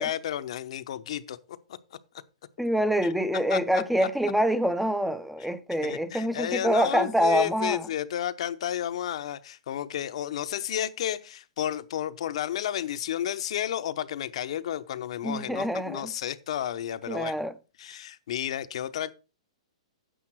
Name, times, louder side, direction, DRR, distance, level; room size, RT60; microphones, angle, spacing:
voice 1, 0.0-1.4 1.7-2.0 3.5-3.8 5.8-17.3 17.8-19.1, left 11 dB, 60° left, 0.8 m, -32 dB
voice 2, 2.6-7.9 15.2-16.1 17.1-17.5, equal, ahead, 0.5 m, -26 dB
10.0 x 7.1 x 4.6 m
hypercardioid pair, 150°, 4 cm